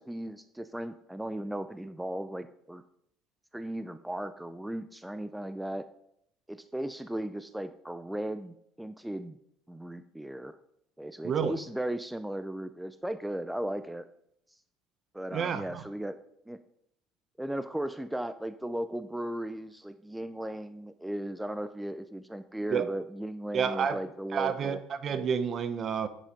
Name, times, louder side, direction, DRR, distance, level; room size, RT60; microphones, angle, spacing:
voice 1, 0.0-2.8 3.5-5.8 6.5-9.4 9.7-10.6 11.0-14.0 15.1-16.2 16.5-16.6 17.4-24.8, right 1 dB, 5° right, 11 dB, 0.6 m, -36 dB
voice 2, 11.2-11.5 15.3-15.8 22.7-22.8 23.5-24.0 24.3-26.1, right 7 dB, 45° right, 12 dB, 1.0 m, -29 dB
9.2 x 8.3 x 5.3 m, 0.73 s
supercardioid pair, 90°, 0 cm